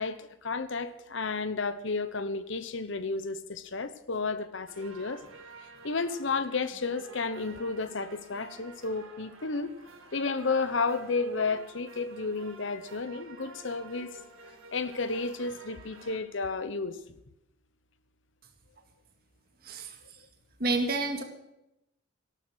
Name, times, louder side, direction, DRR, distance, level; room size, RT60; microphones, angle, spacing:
voice 1, 0.0-5.2 5.8-9.8 10.1-14.2 14.7-17.0, left 4 dB, 70° left, 13 dB, 0.9 m, -32 dB
sound 1, 4.7-16.2, right 3 dB, 90° right, 2.2 m, -50 dB
voice 2, 19.6-20.0 20.6-21.2, right 3 dB, 45° right, 5 dB, 2.0 m, -29 dB
13.5 x 12.0 x 6.3 m, 0.88 s
head